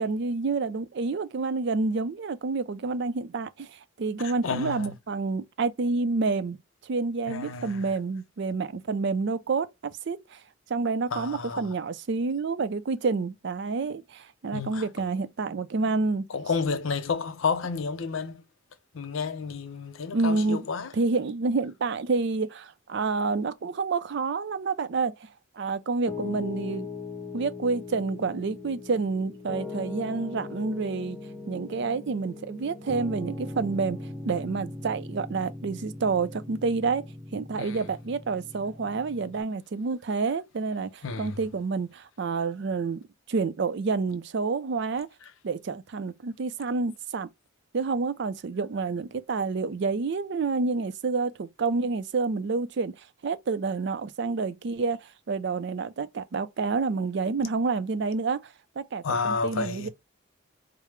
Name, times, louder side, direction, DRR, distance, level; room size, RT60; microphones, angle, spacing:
voice 1, 0.0-6.6 6.8-9.7 10.1-10.4 10.7-16.3 20.1-20.6 21.0-25.3 25.6-26.9 27.3-31.2 31.5-34.0 34.2-37.1 37.3-45.1 45.4-47.3 47.7-53.0 53.2-58.4 58.8-59.9, right 4 dB, 55° right, 0.4 m, -28 dB
voice 2, 4.2-5.0 7.3-7.9 11.1-11.7 14.5-14.9 16.3-18.4 18.9-20.9 37.5-37.9 41.0-41.4 45.2-45.3 59.0-59.9, left 5 dB, 70° left, 0.6 m, -31 dB
Piano, 26.1-39.4, left 3 dB, 5° left, 0.5 m, -39 dB
4.8 x 2.0 x 3.1 m
head